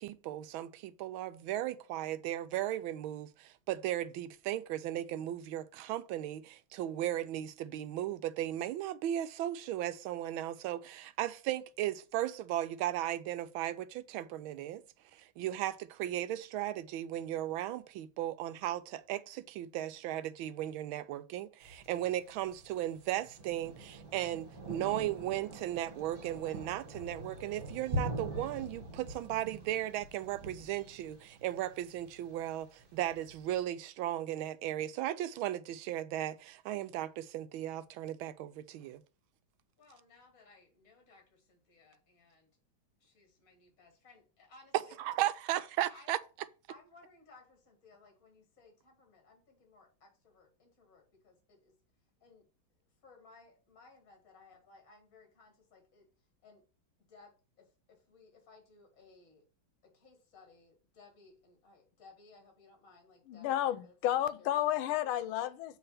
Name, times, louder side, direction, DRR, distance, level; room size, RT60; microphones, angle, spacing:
voice 1, 0.0-14.8 15.1-39.0 45.0-46.2, right 13 dB, 80° right, 1.4 m, -36 dB
Thunder, 21.6-33.6, right 1 dB, 25° right, 1.6 m, -44 dB
voice 2, 39.8-42.5 43.0-45.0 45.5-46.1 46.7-51.8 52.2-52.5 53.0-56.7 57.1-59.4 59.8-64.0 64.4-64.6 65.0-65.6, left 3 dB, 45° left, 2.3 m, -60 dB
voice 3, 63.3-65.8, left 12 dB, 90° left, 1.4 m, -32 dB
7.0 x 3.3 x 5.7 m
omnidirectional pair, 2.2 m